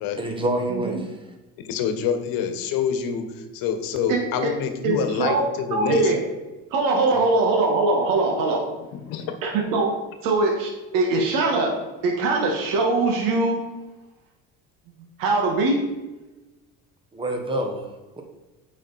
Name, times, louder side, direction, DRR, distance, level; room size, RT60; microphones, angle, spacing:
voice 1, 0.2-1.1 17.1-17.8 18.2-18.3, right 1 dB, 15° right, 4 dB, 1.2 m, -26 dB
voice 2, 1.6-6.1 7.1-7.2 8.9-9.4, left 7 dB, 85° left, 7 dB, 1.2 m, -27 dB
voice 3, 4.1-4.5 4.8-5.4 5.7-6.2 6.7-8.6 9.4-9.9 10.2-11.7 12.0-13.6 15.2-15.8, right 3 dB, 70° right, 0 dB, 1.4 m, -22 dB
8.6 x 5.2 x 4.0 m, 1.1 s
cardioid pair, 135°, 33 cm